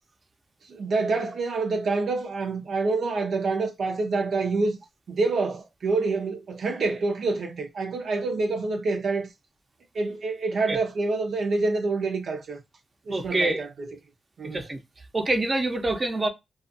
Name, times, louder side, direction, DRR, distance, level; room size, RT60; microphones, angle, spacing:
voice 1, 0.7-4.8 5.1-9.3 9.9-12.6 13.1-13.9 14.4-14.6, right 3 dB, 75° right, 0.5 m, -27 dB
voice 2, 13.1-13.6 14.5-14.8 15.1-16.3, right 2 dB, 35° right, 0.6 m, -25 dB
2.4 x 2.4 x 2.5 m
cardioid pair, 60°, 0 cm